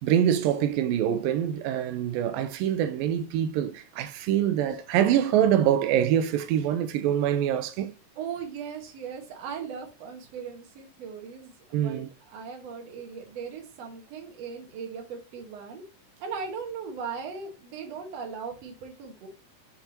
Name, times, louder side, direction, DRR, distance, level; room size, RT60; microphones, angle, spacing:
voice 1, 0.0-7.9 11.7-12.1, right 10 dB, 90° right, 2.3 m, -25 dB
voice 2, 8.2-15.8 16.2-19.3, right 6 dB, 55° right, 2.3 m, -38 dB
6.9 x 5.8 x 2.9 m
omnidirectional pair, 4.0 m